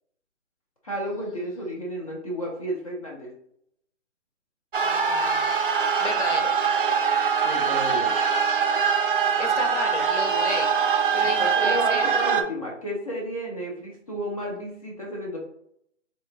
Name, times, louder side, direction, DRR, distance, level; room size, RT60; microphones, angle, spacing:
voice 1, 0.8-3.3 7.4-8.2 11.2-15.4, equal, 30° left, -2 dB, 0.6 m, -32 dB
sound 1, 4.7-12.4, right 6 dB, 45° right, 0.4 m, -23 dB
voice 2, 4.8-5.5 6.0-6.5 9.4-10.7 11.1-12.1, left 3 dB, 70° left, 4 dB, 0.9 m, -32 dB
3.0 x 2.5 x 3.3 m, 0.70 s
hypercardioid pair, 155°, 36 cm